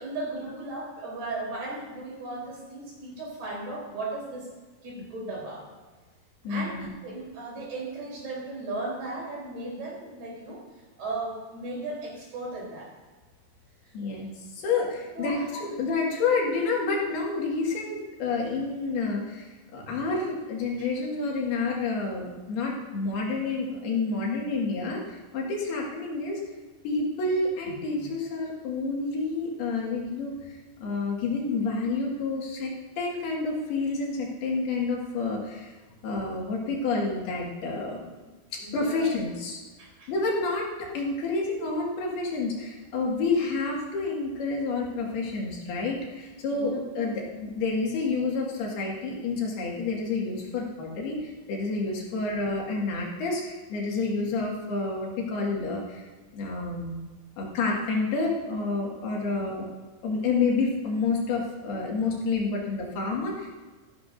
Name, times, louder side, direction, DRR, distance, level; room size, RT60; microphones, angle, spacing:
voice 1, 0.0-4.5 4.8-5.7 6.5-10.6 11.0-12.9 15.1-15.5 19.8-20.0 38.6-39.1 39.8-40.1 46.5-46.8 59.2-59.5, right 2 dB, 75° right, -5 dB, 6.0 m, -36 dB
voice 2, 6.4-6.9 13.9-26.4 26.8-35.7 36.0-38.1 38.7-39.6 40.1-56.0 56.3-57.1 57.4-59.7 60.0-63.5, left 3 dB, 75° left, -2 dB, 4.0 m, -29 dB
13.5 x 12.5 x 2.7 m, 1.3 s
omnidirectional pair, 4.6 m